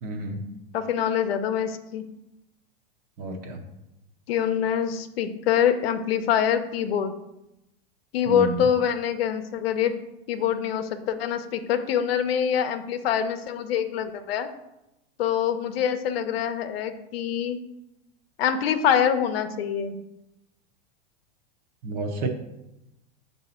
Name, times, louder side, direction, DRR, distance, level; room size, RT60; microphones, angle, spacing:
voice 1, 0.0-0.4 3.2-3.6 8.3-8.7 21.8-22.3, right 2 dB, 30° right, 4 dB, 0.8 m, -30 dB
voice 2, 0.7-2.0 4.3-7.1 8.1-9.9 10.3-14.5 15.2-17.6 18.4-20.0, left 8 dB, 75° left, 9 dB, 0.7 m, -25 dB
6.5 x 2.8 x 5.6 m, 0.92 s
supercardioid pair, 160°, 30 cm